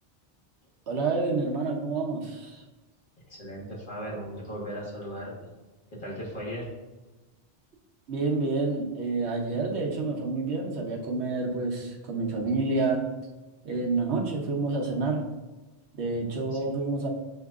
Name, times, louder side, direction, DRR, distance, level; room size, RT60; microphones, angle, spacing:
voice 1, 0.9-2.6 8.1-13.1 13.6-15.2 15.9-17.1, right 3 dB, 70° right, 0 dB, 1.1 m, -28 dB
voice 2, 3.2-5.5 5.9-6.7 16.5-16.7, equal, 45° left, -6 dB, 1.5 m, -37 dB
8.0 x 2.8 x 2.4 m, 1.2 s
omnidirectional pair, 1.2 m